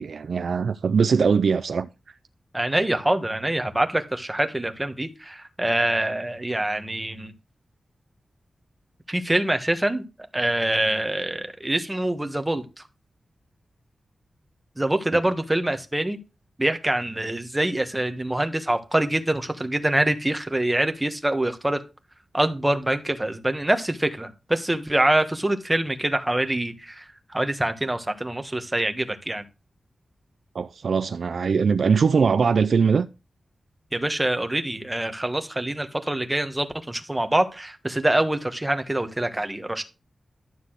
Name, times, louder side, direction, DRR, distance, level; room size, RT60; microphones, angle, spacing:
voice 1, 0.0-1.9 30.5-33.1, right 5 dB, 70° right, 0.4 m, -21 dB
voice 2, 2.5-7.3 9.1-10.0 10.3-12.6 14.8-16.2 16.6-21.8 22.3-27.0 27.3-29.4 33.9-39.8, right 1 dB, 15° right, 1.6 m, -25 dB
12.0 x 4.1 x 8.0 m
wide cardioid pair, 90°, 0 cm